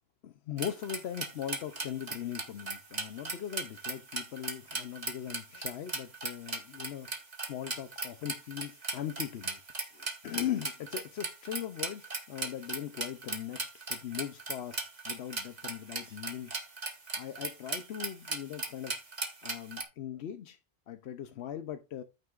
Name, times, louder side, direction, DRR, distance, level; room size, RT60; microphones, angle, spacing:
voice 1, 0.2-7.1 7.5-9.6 9.9-16.5 17.2-19.0 19.4-20.6 20.9-22.0, left 10 dB, 90° left, 0.9 m, -39 dB
sound 1, 0.6-19.8, right 3 dB, 45° right, 1.6 m, -37 dB
9.4 x 9.4 x 2.4 m
omnidirectional pair, 1.0 m